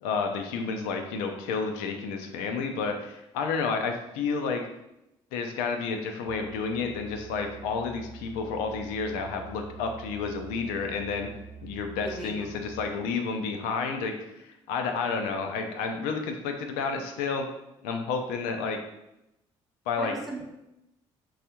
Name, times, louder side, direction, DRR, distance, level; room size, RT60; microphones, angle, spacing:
voice 1, 0.0-4.6 5.3-11.3 11.6-14.1 14.4-17.5 17.8-18.8 19.9-20.1, left 5 dB, 85° left, 4 dB, 0.4 m, -30 dB
Musical instrument, 6.2-13.1, right 6 dB, 50° right, 0.7 m, -46 dB
voice 2, 12.1-12.6 20.0-20.4, right 1 dB, ahead, -3 dB, 0.8 m, -38 dB
3.3 x 2.3 x 2.8 m, 0.88 s
hypercardioid pair, 55°, 15 cm